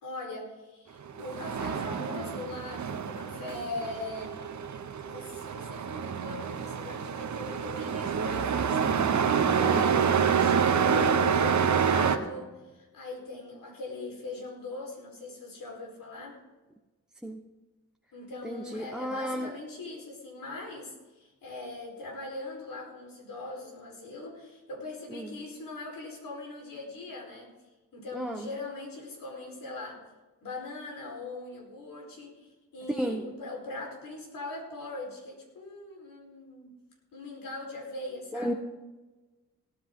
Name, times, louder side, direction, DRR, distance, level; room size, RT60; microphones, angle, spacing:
voice 1, 0.0-4.3 5.0-11.1 11.4-16.4 18.1-27.5 27.9-30.0 30.4-36.7 37.1-38.6, left 2 dB, 75° left, 0 dB, 4.6 m, -41 dB
Truck, 1.1-12.2, right 7 dB, 55° right, 1.1 m, -27 dB
voice 2, 9.6-10.0 17.2-17.4 18.4-19.5 25.1-25.3 28.1-28.5 32.9-33.3 38.3-38.5, equal, ahead, 2 dB, 1.1 m, -33 dB
18.0 x 10.0 x 3.8 m, 1.2 s
cardioid pair, 60°, 34 cm